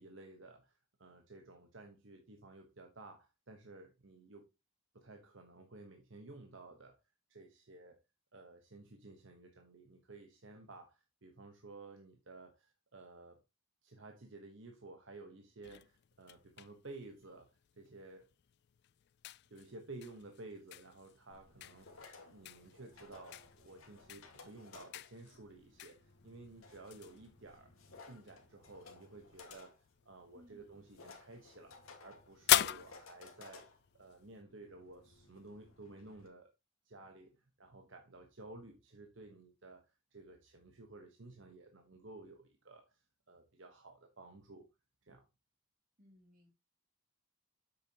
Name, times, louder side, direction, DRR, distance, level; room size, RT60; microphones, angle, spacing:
voice 1, 0.0-4.5 4.9-7.0 7.3-8.0 8.3-13.4 13.8-18.3 19.5-27.7 28.0-36.5 36.8-44.7 45.0-45.2, right 2 dB, 60° right, 1.2 m, -54 dB
sound 1, 15.6-34.4, left 13 dB, 50° left, 0.3 m, -42 dB
sound 2, 21.3-36.3, left 3 dB, 85° left, 1.8 m, -59 dB
voice 2, 46.0-46.5, equal, 40° right, 2.8 m, -62 dB
8.3 x 6.5 x 2.9 m
head